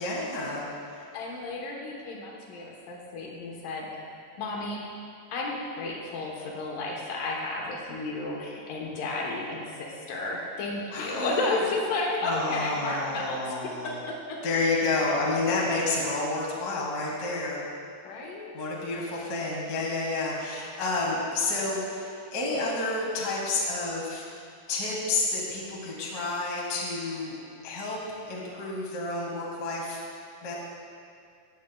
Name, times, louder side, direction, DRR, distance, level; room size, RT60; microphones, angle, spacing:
voice 1, 0.0-1.0 10.9-11.6 12.2-14.0 14.4-17.6 18.5-24.2 24.7-27.4 27.6-28.0 28.3-30.0 30.4-30.5, left 3 dB, 40° left, -4 dB, 1.4 m, -30 dB
voice 2, 1.1-4.0 4.4-4.8 5.3-13.4 13.6-14.4 18.0-18.5, left 2 dB, 75° left, -2 dB, 2.7 m, -32 dB
14.5 x 9.3 x 2.3 m, 2.4 s
omnidirectional pair, 4.0 m